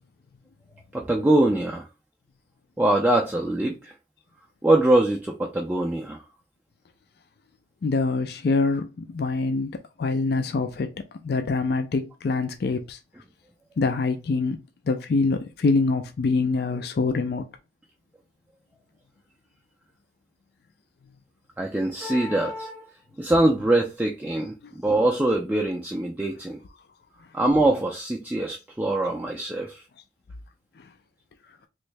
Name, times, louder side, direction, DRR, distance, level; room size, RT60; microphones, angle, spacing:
voice 1, 0.9-1.9 2.8-3.9 4.6-6.2 21.6-22.9 23.2-26.6 27.3-29.8, right 1 dB, 10° right, 0.3 m, -23 dB
voice 2, 7.8-10.9 11.2-13.0 13.8-14.6 14.9-17.5, left 3 dB, 60° left, 0.4 m, -25 dB
3.1 x 2.7 x 3.2 m
head